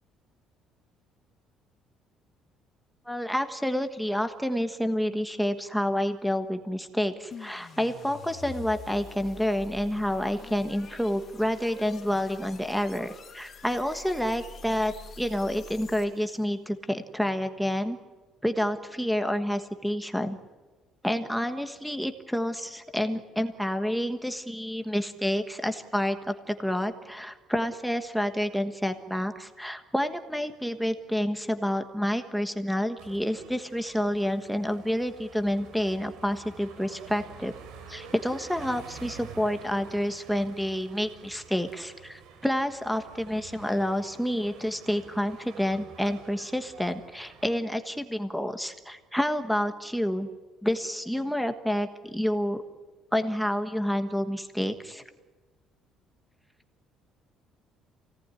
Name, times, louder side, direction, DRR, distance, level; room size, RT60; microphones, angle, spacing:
voice 1, 3.0-18.0 18.4-20.4 21.0-37.5 37.9-50.3 50.6-52.6 53.1-55.0, equal, ahead, 6 dB, 1.4 m, -29 dB
sound 1, 7.3-16.4, left 4 dB, 25° left, 2.9 m, -46 dB
sound 2, 33.0-47.6, right 6 dB, 85° right, 3.8 m, -49 dB
28.5 x 18.0 x 9.8 m, 1.3 s
cardioid pair, 180°, 0 cm